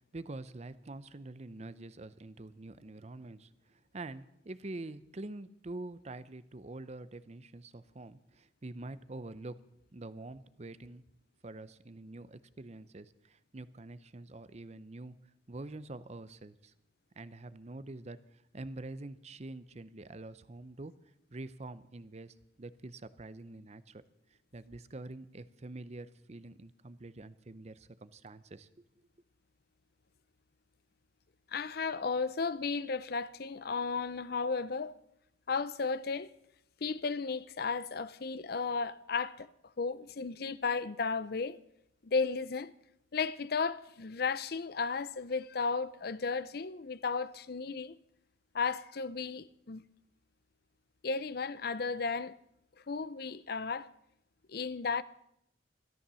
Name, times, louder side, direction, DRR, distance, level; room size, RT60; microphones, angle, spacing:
voice 1, 0.0-9.6 9.9-11.0 11.4-15.2 15.5-16.7 17.2-20.9 21.3-24.0 24.5-28.9, right 2 dB, 35° right, 0.6 m, -46 dB
voice 2, 31.5-34.9 35.5-36.3 36.8-39.5 39.8-41.6 42.0-42.7 43.1-48.0 48.5-49.8 51.0-52.3 52.9-53.9 54.5-55.0, left 4 dB, 55° left, 0.6 m, -34 dB
14.0 x 13.0 x 6.9 m
head